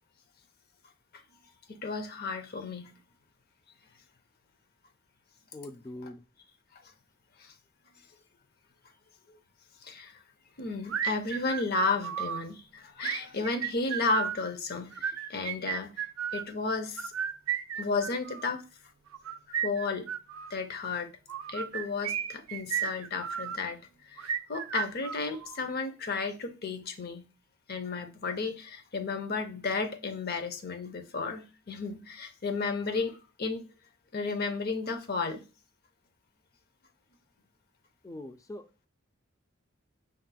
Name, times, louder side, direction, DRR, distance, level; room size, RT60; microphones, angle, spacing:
voice 1, 1.7-2.9 7.4-7.5 9.3-9.4 9.8-10.2 10.6-17.1 17.8-18.6 19.5-20.1 20.5-21.1 21.5-23.8 24.0-27.3 27.7-33.7 34.1-35.4, left 3 dB, 50° left, 0.6 m, -33 dB
voice 2, 5.5-6.2 38.0-38.9, left 1 dB, 15° left, 0.3 m, -43 dB
sound 1, 10.9-12.4 13.0-14.4 14.9-16.5 17.0-18.6 19.1-20.6 21.3-23.6 24.2-25.7, right 9 dB, 85° right, 0.4 m, -34 dB
5.2 x 4.1 x 2.2 m
head